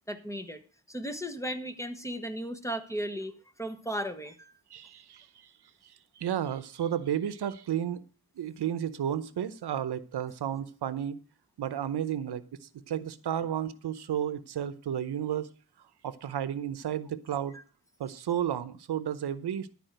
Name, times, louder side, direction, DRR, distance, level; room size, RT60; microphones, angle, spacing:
voice 1, 0.1-0.6 0.9-3.3 3.6-4.5, equal, 10° left, 1.3 m, -35 dB
voice 2, 4.7-5.5 5.8-8.0 8.4-11.2 11.6-15.5 16.0-17.6 18.0-19.7, right 10 dB, 85° right, 0.8 m, -32 dB
12.0 x 4.9 x 7.7 m
wide cardioid pair, 100°, 38 cm